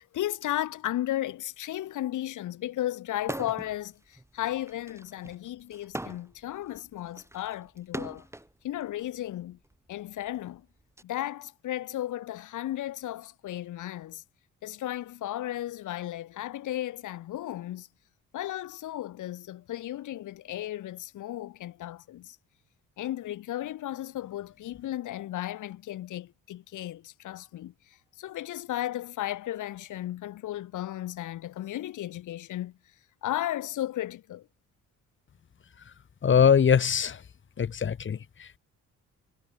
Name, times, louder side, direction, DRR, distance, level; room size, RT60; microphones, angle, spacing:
voice 1, 0.0-8.2 8.6-9.6 9.9-10.6 11.0-14.2 14.6-17.9 18.3-22.4 23.0-27.7 28.2-32.7 33.2-34.4, left 13 dB, 80° left, 4.7 m, -34 dB
sound 1, 3.2-3.8 4.1-8.5 9.4-11.0, right 1 dB, 10° right, 5.2 m, -40 dB
voice 2, 36.2-37.2 37.6-38.6, left 7 dB, 40° left, 1.4 m, -22 dB
cardioid pair, 90°, 30 cm